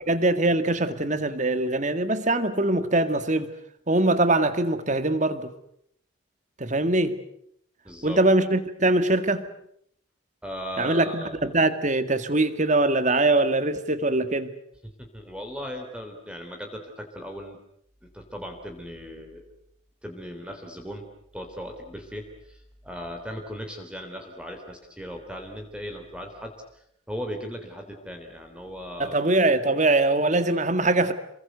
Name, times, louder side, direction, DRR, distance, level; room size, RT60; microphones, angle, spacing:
voice 1, 0.1-3.5 3.9-5.5 6.6-7.2 8.0-9.5 10.8-14.5 29.0-31.1, right 2 dB, 35° right, 2.0 m, -22 dB
voice 2, 7.9-8.2 10.4-11.5 15.0-17.6 18.0-19.5 20.0-21.1 21.3-29.2, equal, 5° right, 3.5 m, -38 dB
28.0 x 22.5 x 8.1 m
head